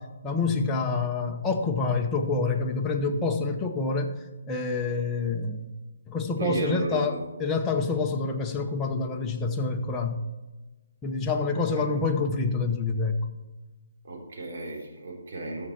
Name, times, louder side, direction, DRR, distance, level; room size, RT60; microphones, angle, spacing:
voice 1, 0.0-4.1 4.5-5.7 6.1-10.2 11.0-13.3, left 4 dB, 10° left, 2 dB, 0.9 m, -27 dB
voice 2, 6.4-7.2 11.4-11.8 14.0-15.7, right 3 dB, 55° right, -1 dB, 3.5 m, -33 dB
14.0 x 6.5 x 4.4 m, 1.2 s
hypercardioid pair, 155°, 0 cm